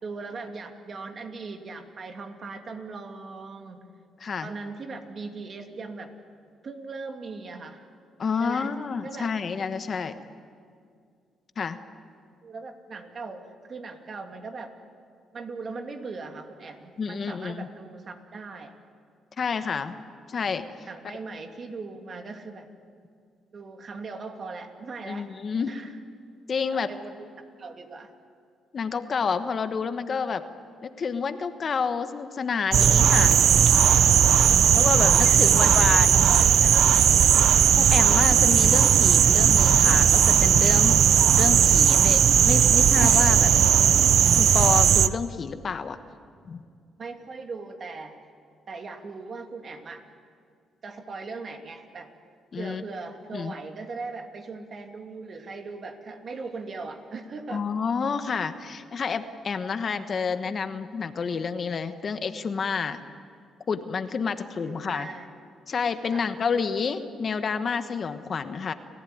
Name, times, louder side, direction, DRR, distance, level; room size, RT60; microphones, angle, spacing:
voice 1, 0.0-3.9 4.4-6.1 6.6-7.8 8.4-8.7 9.0-9.3 12.4-14.7 15.3-18.8 20.9-22.7 23.5-25.3 25.7-25.9 26.9-28.1 35.2-36.9 47.0-48.2 48.7-50.0 50.8-52.1 52.6-57.6 64.4-65.3 66.1-66.3, right 4 dB, 45° right, 5 dB, 2.7 m, -39 dB
voice 2, 4.2-4.5 8.2-10.2 11.6-11.8 17.0-17.7 19.4-19.9 20.3-20.7 21.0-21.2 25.1-25.7 26.5-26.9 28.7-30.4 30.8-33.4 34.7-36.2 37.8-41.0 41.4-43.5 44.4-46.0 46.5-46.6 52.5-52.8 53.3-53.5 57.5-63.0 63.7-65.1 65.7-68.7, left 5 dB, 45° left, 9 dB, 1.3 m, -29 dB
sound 1, 32.7-45.1, right 8 dB, 65° right, 0.7 m, -18 dB
30.0 x 15.5 x 9.5 m, 2.2 s
cardioid pair, 90°, 0 cm